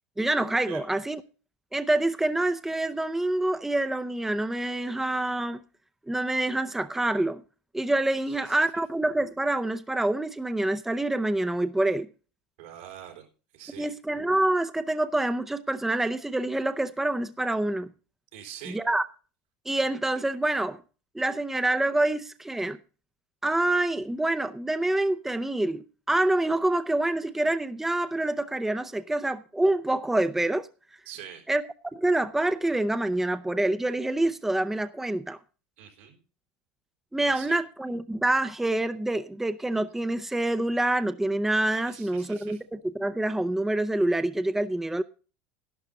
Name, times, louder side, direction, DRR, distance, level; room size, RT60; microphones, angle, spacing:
voice 1, 0.2-1.2 1.7-5.6 6.1-7.4 7.7-12.1 13.8-17.9 18.7-19.0 19.7-20.8 21.1-22.8 23.4-30.7 31.5-31.6 31.9-35.4 37.1-45.0, right 1 dB, 5° right, 0.6 m, -26 dB
voice 2, 12.6-13.3 13.5-13.9 18.3-18.8 31.1-31.4 35.8-36.2 37.2-37.6 41.8-42.6, right 10 dB, 80° right, 4.4 m, -44 dB
11.5 x 11.5 x 3.9 m
supercardioid pair, 110°, 5 cm